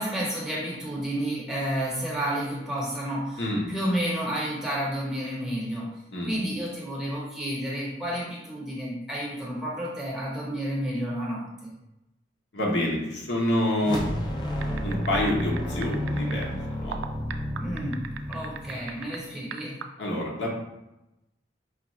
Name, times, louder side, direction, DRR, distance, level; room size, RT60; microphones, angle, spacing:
voice 1, 0.0-3.4 3.7-6.0 6.3-11.7 17.6-19.8, equal, 5° right, -5 dB, 0.8 m, -31 dB
voice 2, 3.4-3.7 6.1-6.3 12.5-14.0 14.8-17.0 20.0-20.6, left 1 dB, 70° left, -2 dB, 0.8 m, -27 dB
sound 1, 13.8-19.2, equal, 25° left, 0.4 m, -31 dB
sound 2, 14.6-16.5 16.9-19.2 19.5-19.8, right 8 dB, 85° right, 0.3 m, -37 dB
4.9 x 2.3 x 3.0 m, 0.92 s
head